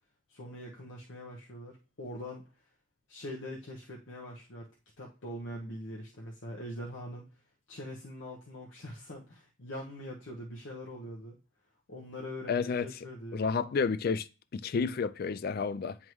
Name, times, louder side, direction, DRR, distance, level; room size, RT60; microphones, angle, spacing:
voice 1, 0.3-2.5 3.1-4.7 5.0-7.3 7.7-11.4 11.9-13.5, equal, 70° left, 0.9 m, -43 dB
voice 2, 12.5-12.9 13.3-14.3 14.5-16.0, left 5 dB, 50° left, 0.3 m, -30 dB
9.2 x 3.6 x 3.1 m
head